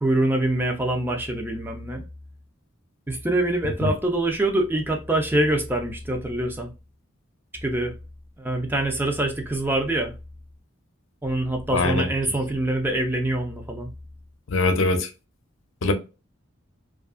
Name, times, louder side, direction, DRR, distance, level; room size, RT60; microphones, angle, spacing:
voice 1, 0.0-2.0 3.1-6.7 7.6-7.9 8.4-10.1 11.2-13.9, right 1 dB, 10° right, 0.4 m, -24 dB
voice 2, 11.7-12.1 14.5-15.1 15.8-15.9, left 2 dB, 80° left, 0.6 m, -22 dB
2.7 x 2.4 x 2.3 m
head